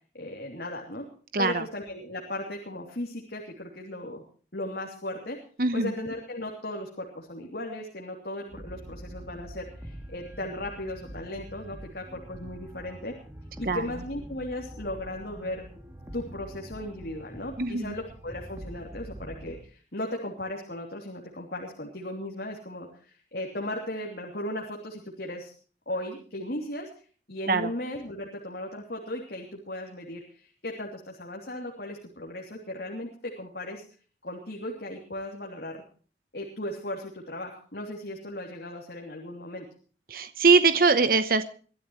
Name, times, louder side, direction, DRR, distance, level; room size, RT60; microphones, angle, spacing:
voice 1, 0.1-1.1 1.4-4.2 4.5-5.4 5.7-13.2 13.6-15.6 16.1-25.5 25.9-26.9 27.3-33.8 34.2-35.8 36.3-39.6, left 1 dB, 65° left, 0 dB, 3.1 m, -36 dB
voice 2, 1.3-1.6 5.6-5.9 13.6-13.9 17.6-17.9 27.5-27.7 40.1-41.4, right 4 dB, 55° right, 11 dB, 1.0 m, -22 dB
sound 1, 8.5-19.6, right 1 dB, 15° right, 2.7 m, -44 dB
23.0 x 13.5 x 3.1 m, 0.41 s
head